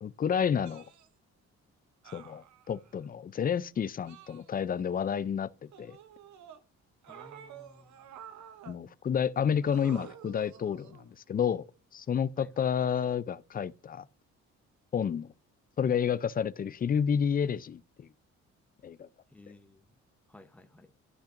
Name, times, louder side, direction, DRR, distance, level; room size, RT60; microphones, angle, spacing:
voice 1, 0.0-0.8 2.1-6.0 8.7-11.6 11.9-14.1 14.9-15.3 15.8-18.1 18.8-19.1, left 7 dB, 30° left, 0.4 m, -30 dB
sound 1, 0.6-1.1 2.0-3.0 4.1-4.9 5.7-6.6 7.0-8.8 9.6-11.1 12.3-12.4, right 9 dB, 70° right, 0.9 m, -50 dB
voice 2, 7.1-8.0 12.4-12.6 19.3-20.0 20.3-20.9, left 2 dB, 5° left, 0.8 m, -55 dB
13.0 x 5.7 x 2.5 m
cardioid pair, 90°, 30 cm